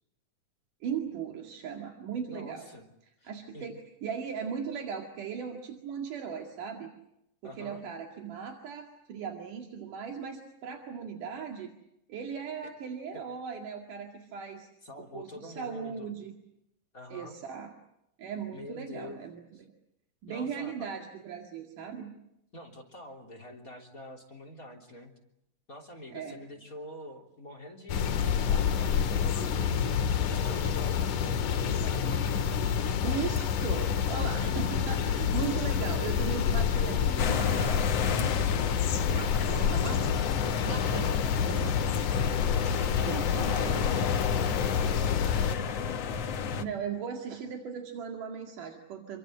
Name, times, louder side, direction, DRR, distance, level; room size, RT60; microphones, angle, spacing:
voice 1, 0.8-2.7 3.3-6.9 7.4-11.7 12.1-14.7 15.0-16.3 17.1-17.7 18.2-19.4 20.2-22.1 26.1-26.4 33.0-38.8 39.1-40.2 40.6-41.8 43.1-43.9 46.5-49.2, right 7 dB, 75° right, 3 dB, 3.7 m, -38 dB
voice 2, 2.3-2.9 3.2-3.7 7.4-7.9 12.6-12.7 13.1-13.2 14.8-16.1 16.9-17.4 18.5-19.2 19.5-19.6 20.3-20.9 22.5-25.1 25.7-29.8 30.3-33.2 39.1-39.8 41.1-42.4 42.8-45.8, left 1 dB, 25° left, 6 dB, 3.6 m, -46 dB
sound 1, 27.9-45.6, left 7 dB, 75° left, 2.8 m, -28 dB
sound 2, 37.2-46.6, left 6 dB, 55° left, 2.2 m, -32 dB
28.0 x 23.5 x 7.8 m, 0.82 s
omnidirectional pair, 3.7 m